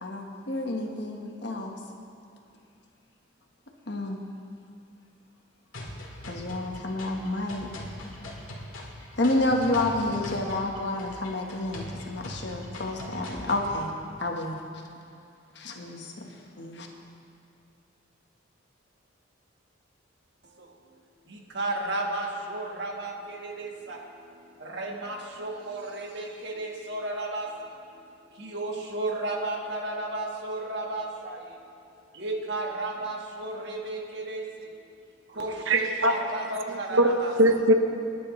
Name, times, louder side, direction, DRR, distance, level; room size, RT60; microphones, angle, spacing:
voice 1, 0.0-1.8 3.9-4.2 6.3-7.7 9.2-13.9 14.2-14.6 15.5-16.1 16.6-16.9, left 2 dB, 55° left, 2 dB, 1.3 m, -29 dB
sound 1, 5.7-13.7, left 1 dB, 85° left, 2.0 m, -41 dB
voice 2, 21.3-24.0 24.6-27.7 28.3-31.5 32.1-34.4 35.3-37.3, right 2 dB, 55° right, 0 dB, 1.5 m, -33 dB
voice 3, 35.7-36.1 36.7-37.7, right 1 dB, 75° right, 5 dB, 0.9 m, -22 dB
24.5 x 9.9 x 3.2 m, 2.5 s
head